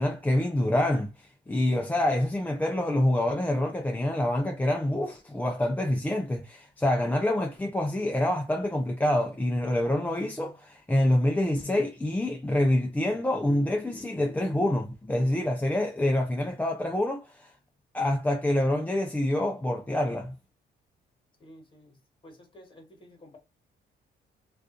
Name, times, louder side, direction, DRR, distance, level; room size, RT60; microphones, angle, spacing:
voice 1, 0.0-17.5 17.9-20.3, left 1 dB, 10° left, 0.4 m, -26 dB
voice 2, 21.4-23.4, equal, 25° left, 1.3 m, -52 dB
2.4 x 2.3 x 2.4 m
cardioid pair, 90°, 20 cm